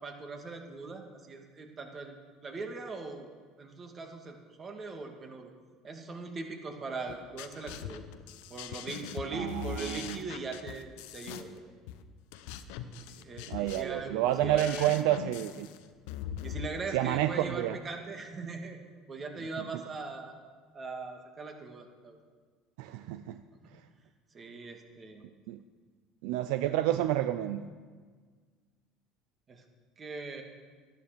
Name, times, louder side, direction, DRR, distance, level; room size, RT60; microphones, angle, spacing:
voice 1, 0.0-2.2 2.4-3.3 3.6-5.5 5.8-8.0 8.5-11.5 12.9-14.9 16.4-18.8 19.1-20.4 20.7-22.2 23.5-23.6 24.3-25.3 29.5-29.6 30.0-30.4, right 3 dB, 35° right, 3 dB, 2.3 m, -40 dB
sound 1, 7.1-16.7, left 9 dB, 75° left, 0.8 m, -42 dB
voice 2, 9.3-10.2 13.5-15.7 16.9-17.8 22.8-23.4 25.5-25.6 26.2-27.6, right 13 dB, 75° right, 10 dB, 0.5 m, -29 dB
12.5 x 11.5 x 6.8 m, 1.5 s
hypercardioid pair, 75°, 0 cm